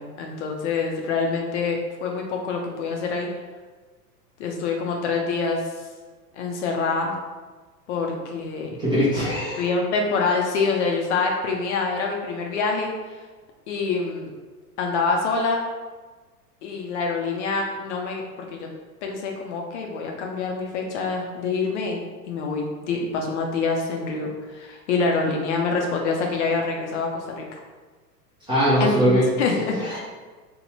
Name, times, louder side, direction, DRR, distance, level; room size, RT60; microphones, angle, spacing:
voice 1, 0.0-3.3 4.4-5.6 6.4-7.1 7.9-8.7 9.6-12.9 13.7-14.3 14.8-15.6 16.6-18.2 18.5-18.7 19.0-22.0 22.3-27.6 28.8-29.1 29.4-30.0, left 4 dB, 45° left, 1 dB, 0.5 m, -26 dB
voice 2, 8.8-9.7 28.5-29.2 29.8-30.0, equal, 10° right, -9 dB, 0.4 m, -21 dB
2.7 x 2.2 x 2.9 m, 1.3 s
hypercardioid pair, 105°, 49 cm